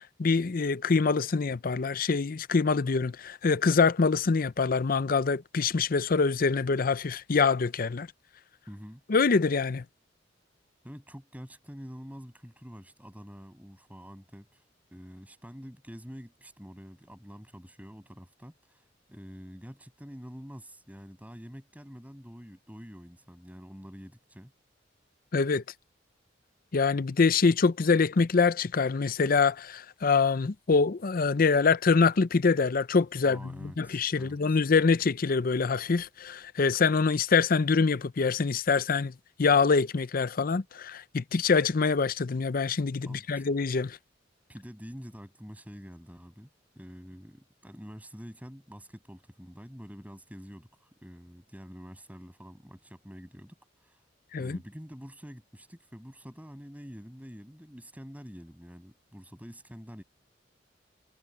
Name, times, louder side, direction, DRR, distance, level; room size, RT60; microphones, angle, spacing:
voice 1, 0.2-8.1 9.1-9.8 25.3-25.6 26.7-39.1 39.4-44.0 54.3-54.6, left 4 dB, 50° left, 0.5 m, -25 dB
voice 2, 8.7-9.0 10.8-14.6 14.9-24.5 33.2-34.6 43.1-43.4 44.5-46.5 46.7-54.0 54.4-60.0, equal, 10° right, 7.8 m, -47 dB
head